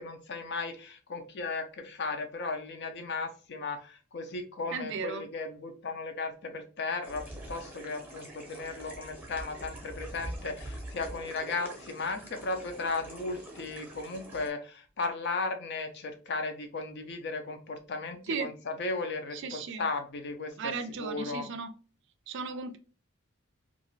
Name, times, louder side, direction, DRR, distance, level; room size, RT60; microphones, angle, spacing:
voice 1, 0.0-20.7 21.0-21.5, left 3 dB, 55° left, 6 dB, 0.5 m, -36 dB
voice 2, 4.7-5.2 18.3-18.5 19.3-19.8 20.6-21.7 22.3-22.8, right 5 dB, 60° right, 9 dB, 0.4 m, -35 dB
sound 1, 7.0-14.5, right 1 dB, 10° right, 0.8 m, -44 dB
2.4 x 2.4 x 3.0 m, 0.37 s
head